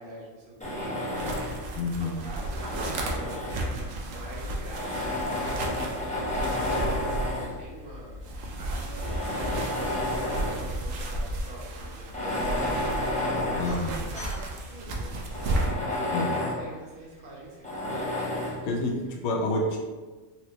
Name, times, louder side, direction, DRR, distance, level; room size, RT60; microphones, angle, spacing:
voice 1, 0.0-1.7 2.0-6.2 6.4-8.2 8.6-15.8 16.1-17.7, right 2 dB, 50° right, -5 dB, 1.1 m, -44 dB
Tools, 0.6-1.7 2.4-4.0 4.7-7.6 8.3-8.4 8.9-10.7 11.1-11.2 12.0-14.5 14.9-15.0 15.3-16.7 17.6-18.6, left 1 dB, 10° left, 0.3 m, -31 dB
sound 1, 1.1-15.7, right 1 dB, 70° right, 0.9 m, -34 dB
voice 2, 1.7-2.2 13.6-13.9 16.1-16.3 18.6-19.8, left 2 dB, 60° left, 0 dB, 0.8 m, -28 dB
4.1 x 2.1 x 2.8 m, 1.3 s
omnidirectional pair, 1.5 m